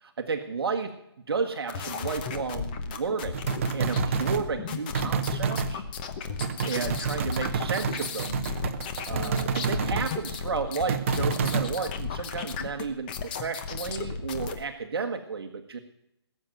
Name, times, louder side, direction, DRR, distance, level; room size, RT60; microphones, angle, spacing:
voice 1, 0.0-0.9 1.3-3.4 3.7-5.8 6.6-8.4 9.1-13.1 13.4-15.8, right 5 dB, 60° right, 5 dB, 1.5 m, -32 dB
sound 1, 1.7-14.6, left 5 dB, 20° left, 1.0 m, -35 dB
sound 2, 3.3-4.5 4.9-5.7 6.4-10.1 10.9-11.7, right 6 dB, 30° right, 0.9 m, -29 dB
Bass guitar, 9.1-12.3, right 5 dB, 5° right, 4.1 m, -45 dB
19.5 x 7.7 x 9.2 m, 0.80 s
hypercardioid pair, 170°, 14 cm